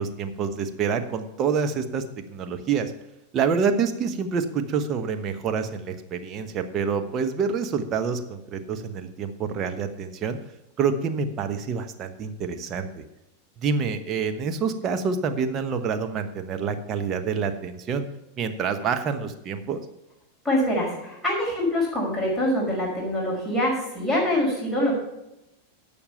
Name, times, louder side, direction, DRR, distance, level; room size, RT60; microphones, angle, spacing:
voice 1, 0.0-2.9 3.3-10.4 10.8-13.0 13.6-18.0 18.4-19.8, right 6 dB, 30° right, 7 dB, 1.1 m, -27 dB
voice 2, 20.4-24.9, left 1 dB, 5° right, -5 dB, 5.2 m, -24 dB
11.5 x 7.1 x 5.6 m, 0.88 s
figure-of-eight pair, 90°, 0 cm